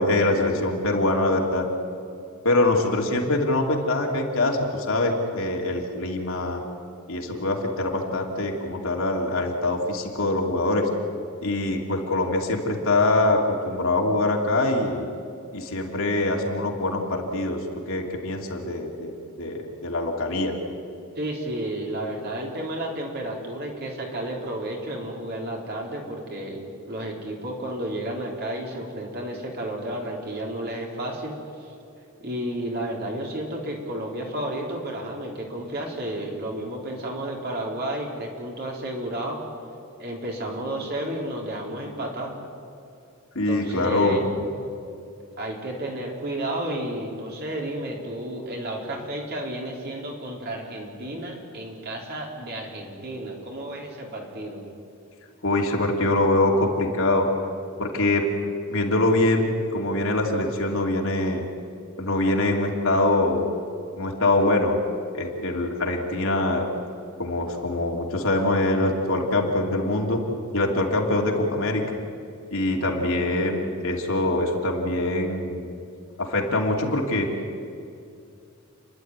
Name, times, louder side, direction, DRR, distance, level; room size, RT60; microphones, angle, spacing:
voice 1, 0.0-1.6 2.4-6.6 7.1-10.9 11.4-15.1 15.5-20.5 43.3-44.2 55.4-57.3 57.8-58.2 58.7-61.4 62.0-63.5 64.0-64.8 65.1-66.7 67.2-70.2 70.5-71.8 72.5-75.7 76.2-77.3, left 2 dB, 65° left, 0 dB, 2.8 m, -24 dB
voice 2, 21.2-31.7 32.2-39.4 40.0-42.3 43.5-44.3 45.4-54.6, right 1 dB, 45° right, 0 dB, 3.7 m, -32 dB
29.0 x 11.5 x 9.6 m, 2.6 s
head